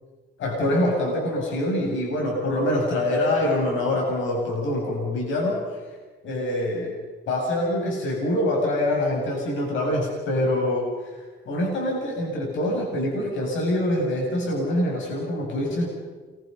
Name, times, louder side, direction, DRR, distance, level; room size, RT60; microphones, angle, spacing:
voice 1, 0.4-5.6 6.2-6.9 7.3-11.2 11.5-15.9, left 1 dB, 75° left, -1 dB, 7.9 m, -25 dB
29.5 x 24.5 x 5.6 m, 1.4 s
cardioid pair, 90°, 20 cm